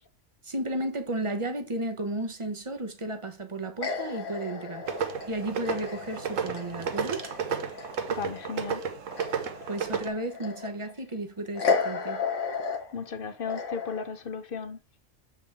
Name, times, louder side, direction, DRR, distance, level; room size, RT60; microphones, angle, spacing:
voice 1, 0.4-4.9 5.3-7.2 9.7-12.2, right 1 dB, 25° right, 1.0 m, -33 dB
sound 1, 3.8-8.5 8.9-10.9 11.5-14.0, left 5 dB, 70° left, 1.5 m, -33 dB
sound 2, 4.9-10.1, right 6 dB, 85° right, 1.3 m, -32 dB
voice 2, 8.1-8.8 12.9-14.8, left 5 dB, 55° left, 0.8 m, -35 dB
7.2 x 5.1 x 3.5 m
omnidirectional pair, 1.3 m